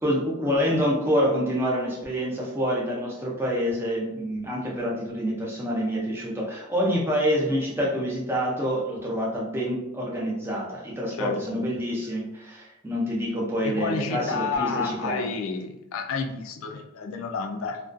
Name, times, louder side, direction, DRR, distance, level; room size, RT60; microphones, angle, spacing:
voice 1, 0.0-15.3, equal, 10° right, -4 dB, 0.5 m, -27 dB
voice 2, 11.2-11.6 13.8-17.8, left 4 dB, 70° left, 4 dB, 0.3 m, -30 dB
2.3 x 2.2 x 2.4 m, 0.90 s
head